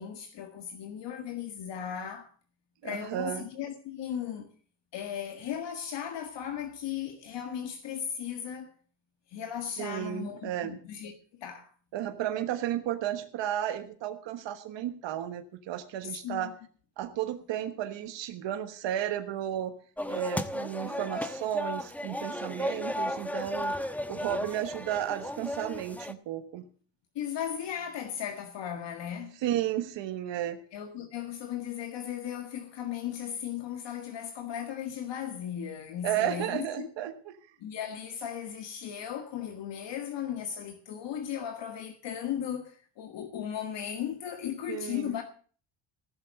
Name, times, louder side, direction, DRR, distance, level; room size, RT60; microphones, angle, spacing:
voice 1, 0.0-2.3 2.8-4.5 4.9-8.7 9.3-11.1 11.4-11.7 16.0-16.5 27.2-29.4 30.7-36.9 37.6-45.2, left 9 dB, 75° left, 1.8 m, -36 dB
voice 2, 2.8-3.4 9.8-10.8 11.9-16.5 17.0-19.7 20.1-26.6 29.4-30.6 36.0-37.3 44.7-45.1, right 11 dB, 85° right, 1.3 m, -33 dB
sound 1, 20.0-26.1, left 1 dB, 5° left, 1.0 m, -34 dB
15.5 x 7.2 x 7.6 m
cardioid pair, 105°, 43 cm